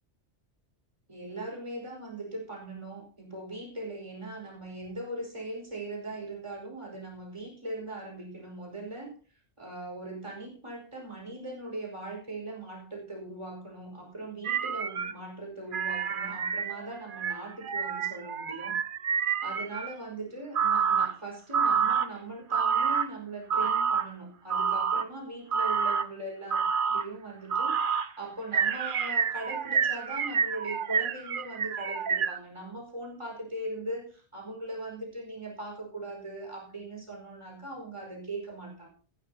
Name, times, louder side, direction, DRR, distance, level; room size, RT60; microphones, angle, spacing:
voice 1, 1.1-9.1 9.6-18.8 19.4-38.9, right 2 dB, 25° right, 0 dB, 5.0 m, -40 dB
sound 1, 14.4-15.1 15.7-19.9 20.5-21.1 21.5-22.1 22.5-23.1 23.5-24.0 24.5-25.0 25.5-26.1 26.5-27.0 27.5-28.1 28.5-32.4, right 6 dB, 50° right, 0.9 m, -28 dB
15.0 x 12.0 x 2.9 m, 0.40 s
omnidirectional pair, 1.2 m